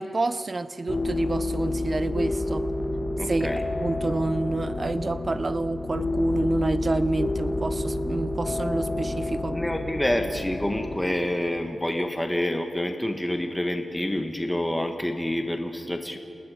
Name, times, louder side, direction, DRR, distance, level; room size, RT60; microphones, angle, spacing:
voice 1, 0.0-2.7 3.3-3.5 3.8-9.6, right 3 dB, 40° right, 14 dB, 0.9 m, -28 dB
sound 1, 0.9-11.0, left 2 dB, 45° left, 2.2 m, -29 dB
voice 2, 3.2-3.6 9.5-16.2, left 1 dB, 10° left, 5 dB, 1.7 m, -28 dB
29.0 x 19.5 x 5.2 m, 2.8 s
cardioid pair, 75°, 0 cm